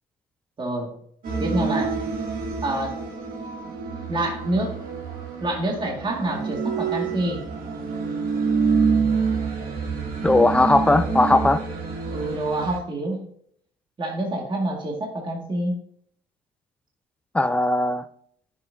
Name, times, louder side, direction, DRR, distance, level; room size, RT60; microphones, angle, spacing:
voice 1, 0.6-1.0 1.4-1.9 2.6-3.0 4.1-4.7 5.4-7.4 12.1-13.2 14.0-15.8, right 1 dB, 30° right, -1 dB, 2.1 m, -27 dB
sound 1, 1.2-12.8, right 5 dB, 55° right, 2.6 m, -27 dB
voice 2, 10.2-11.6 17.3-18.0, left 2 dB, 5° left, 11 dB, 0.6 m, -18 dB
9.6 x 7.0 x 2.7 m, 0.66 s
cardioid pair, 110°, 17 cm